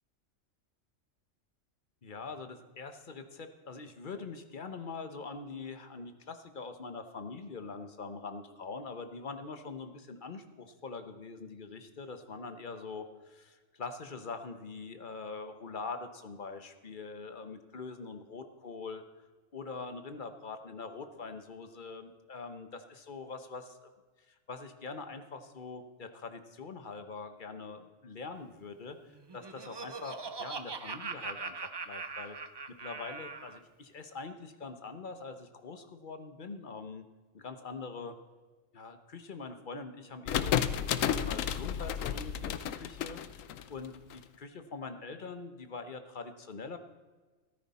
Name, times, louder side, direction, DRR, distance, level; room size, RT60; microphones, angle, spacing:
voice 1, 2.0-19.0 19.5-23.9 24.3-32.4 32.7-37.1 37.3-38.1 38.7-40.6 41.1-46.8, left 4 dB, 40° left, 8 dB, 1.0 m, -43 dB
Laughter, 29.1-33.6, right 4 dB, 45° right, 0.3 m, -41 dB
sound 1, 40.3-44.1, left 9 dB, 80° left, 1.0 m, -32 dB
14.0 x 13.0 x 4.2 m, 1.3 s
omnidirectional pair, 1.4 m